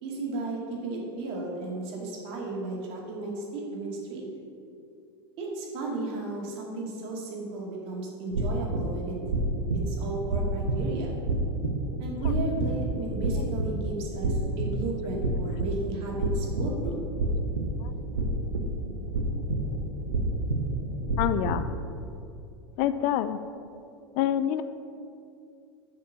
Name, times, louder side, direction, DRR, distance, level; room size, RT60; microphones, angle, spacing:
voice 1, 0.0-4.2 5.4-9.2 9.9-11.1 12.0-17.0, right 2 dB, 50° right, -2 dB, 2.2 m, -34 dB
sound 1, 8.3-21.9, right 1 dB, 85° right, 0.9 m, -29 dB
voice 2, 21.2-21.7 22.8-23.4 24.1-24.6, left 11 dB, 50° left, 12 dB, 0.4 m, -26 dB
7.0 x 5.2 x 6.8 m, 2.5 s
figure-of-eight pair, 85°, 13 cm